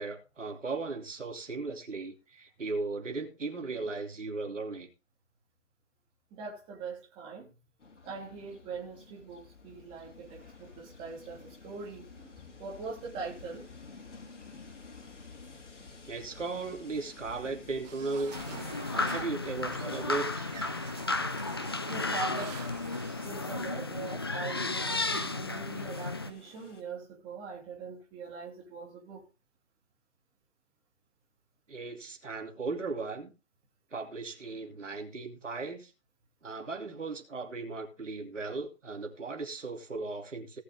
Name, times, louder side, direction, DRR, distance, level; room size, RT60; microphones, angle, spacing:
voice 1, 0.0-4.9 16.1-18.3 18.9-20.5 31.7-33.3 33.9-35.9 36.4-40.6, right 3 dB, 75° right, 2.8 m, -37 dB
voice 2, 6.3-7.5 8.0-13.7 21.9-22.6 23.2-29.2, right 4 dB, 15° right, 2.8 m, -42 dB
Train, 7.8-26.8, left 4 dB, 70° left, 3.4 m, -52 dB
sound 1, 17.8-23.6, right 6 dB, 35° right, 2.9 m, -47 dB
sound 2, 18.3-26.3, left 3 dB, 20° left, 0.5 m, -33 dB
17.5 x 6.5 x 3.6 m
figure-of-eight pair, 150°, 37 cm